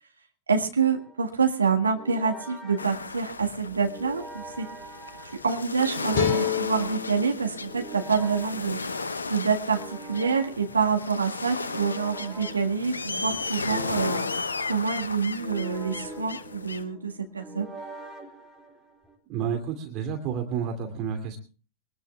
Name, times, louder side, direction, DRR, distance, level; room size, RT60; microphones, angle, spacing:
voice 1, 0.5-4.7 5.4-8.8 9.3-14.2 14.6-17.7, right 5 dB, 75° right, 4 dB, 1.8 m, -27 dB
sound 1, 0.8-19.2, right 2 dB, 10° right, 3.1 m, -44 dB
sound 2, 2.8-16.8, left 3 dB, 75° left, 1.0 m, -35 dB
A Bar thin strs, 6.1-9.3, left 8 dB, 50° left, 3.0 m, -31 dB
voice 2, 19.3-21.4, right 7 dB, 40° right, 5 dB, 2.6 m, -30 dB
23.5 x 20.5 x 2.3 m, 0.35 s
figure-of-eight pair, 90°, 0 cm